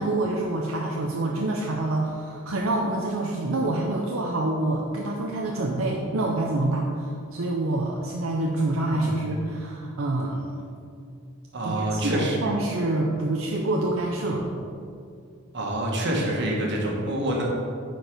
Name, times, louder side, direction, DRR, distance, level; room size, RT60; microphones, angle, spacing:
voice 1, 0.0-10.5 11.6-14.4, right 2 dB, 80° right, -1 dB, 0.7 m, -26 dB
voice 2, 11.5-12.4 15.5-17.4, right 1 dB, 60° right, -1 dB, 1.5 m, -27 dB
9.2 x 4.7 x 5.1 m, 2.3 s
head